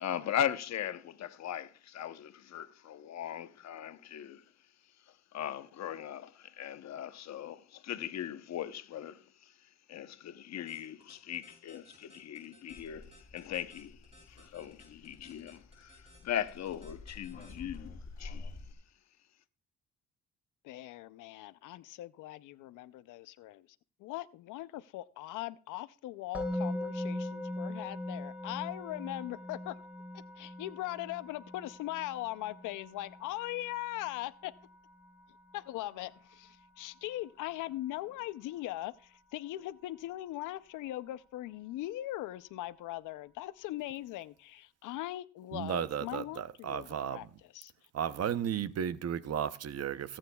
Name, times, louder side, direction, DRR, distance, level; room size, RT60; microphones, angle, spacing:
voice 1, 0.0-4.4 5.3-9.2 9.9-14.0 14.3-18.5, left 10 dB, 60° left, 0.9 m, -39 dB
sound 1, 10.7-17.8, equal, 20° right, 6.8 m, -60 dB
sound 2, 12.7-18.7, left 3 dB, 25° left, 3.0 m, -49 dB
voice 2, 20.6-23.7 24.0-29.8 30.1-34.5 35.5-47.3 47.5-47.7, left 15 dB, 85° left, 0.5 m, -40 dB
Musical instrument, 26.3-37.5, left 1 dB, 5° right, 4.2 m, -41 dB
voice 3, 45.5-47.3 47.9-50.2, right 9 dB, 55° right, 0.7 m, -34 dB
24.0 x 8.9 x 2.3 m
cardioid pair, 90°, 30 cm